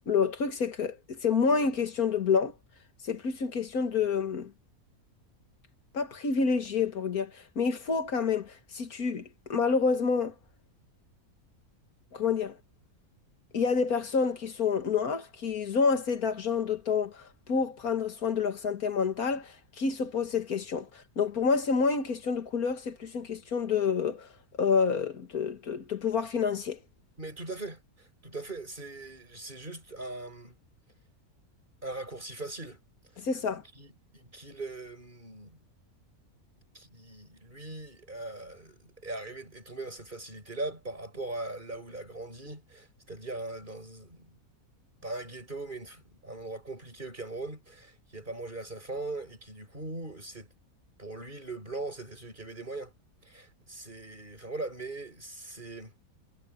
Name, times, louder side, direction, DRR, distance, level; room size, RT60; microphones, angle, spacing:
voice 1, 0.1-2.5 3.0-4.5 5.9-9.2 9.5-10.3 12.1-12.6 13.5-17.2 17.5-20.9 21.2-24.3 24.6-26.8 33.2-33.6, left 5 dB, 75° left, 2.1 m, -28 dB
voice 2, 27.2-30.6 31.8-32.8 33.4-35.6 36.7-44.4 45.0-50.5 51.0-52.9 53.2-55.9, right 2 dB, 35° right, 7.4 m, -40 dB
omnidirectional pair, 1.5 m